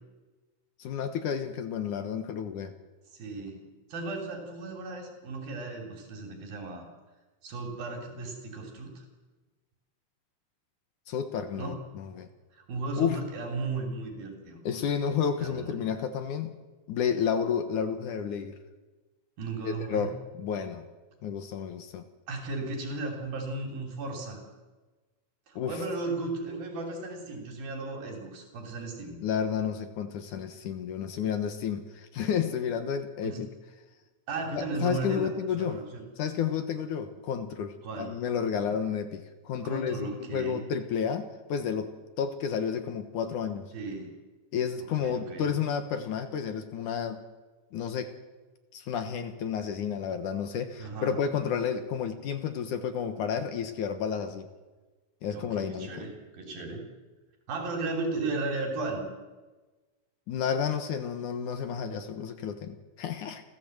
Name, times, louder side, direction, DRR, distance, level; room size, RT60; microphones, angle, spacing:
voice 1, 0.8-2.7 11.1-12.3 13.0-13.2 14.7-16.6 16.9-18.6 19.6-20.9 21.2-22.0 25.6-25.8 29.2-33.5 34.5-35.8 36.2-43.7 44.5-47.2 47.7-48.1 48.7-54.5 55.2-55.9 60.3-63.4, left 7 dB, 65° left, 8 dB, 2.6 m, -31 dB
voice 2, 3.1-6.8 7.4-9.0 11.6-11.8 12.5-14.6 15.4-15.9 19.4-20.1 22.3-24.4 25.5-29.2 33.2-33.4 34.3-36.1 37.8-38.2 39.6-40.7 43.7-44.1 44.8-45.6 50.8-51.2 55.3-56.8 57.5-59.1, right 3 dB, 75° right, 3 dB, 4.8 m, -35 dB
29.5 x 14.5 x 7.9 m, 1.2 s
omnidirectional pair, 4.2 m